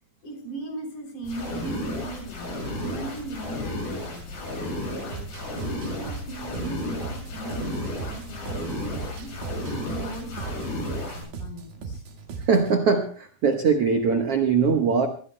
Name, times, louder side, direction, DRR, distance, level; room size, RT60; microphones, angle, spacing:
voice 1, 0.2-5.2 5.7-9.3 9.8-12.0, right 2 dB, 50° left, 3 dB, 4.8 m, -39 dB
sound 1, 1.2-11.2, left 1 dB, 90° left, 8.7 m, -33 dB
sound 2, 5.1-12.8, right 4 dB, 65° right, 3.5 m, -38 dB
voice 2, 12.5-15.1, right 5 dB, 85° right, 4 dB, 1.3 m, -21 dB
24.5 x 20.0 x 2.2 m, 0.43 s
omnidirectional pair, 4.5 m